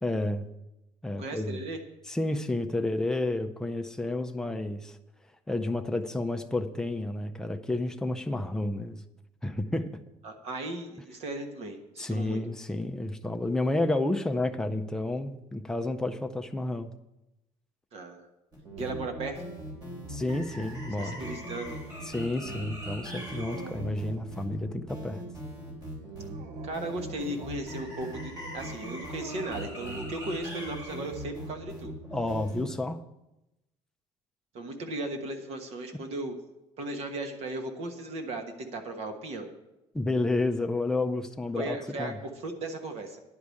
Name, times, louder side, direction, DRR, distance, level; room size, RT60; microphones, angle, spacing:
voice 1, 0.0-0.5 1.0-1.6 2.1-5.0 5.5-9.0 9.4-9.9 12.0-16.9 20.1-21.2 22.1-25.2 32.1-33.0 39.9-42.2, left 2 dB, 5° left, 5 dB, 0.5 m, -30 dB
voice 2, 1.2-1.8 10.2-12.4 17.9-18.3 18.8-19.4 21.0-21.8 26.6-31.9 34.5-36.4 36.8-39.5 41.5-43.2, right 2 dB, 55° right, 5 dB, 1.3 m, -36 dB
sound 1, 18.5-32.6, equal, 30° right, 3.5 m, -40 dB
Dog, 23.3-24.3 26.2-27.7 29.2-29.9, right 4 dB, 80° right, 0.9 m, -45 dB
10.5 x 4.9 x 8.3 m, 0.93 s
cardioid pair, 165°, 13 cm